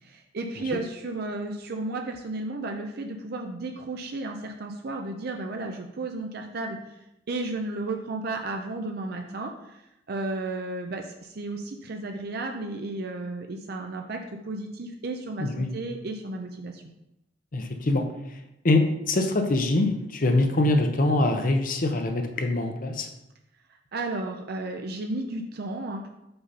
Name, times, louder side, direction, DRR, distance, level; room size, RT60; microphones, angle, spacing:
voice 1, 0.0-6.9 7.3-16.8 23.7-26.1, right 2 dB, 55° right, 3 dB, 0.6 m, -33 dB
voice 2, 17.5-18.1 18.3-18.4 18.6-23.1, left 2 dB, 50° left, 5 dB, 0.8 m, -24 dB
5.5 x 4.1 x 5.5 m, 0.86 s
head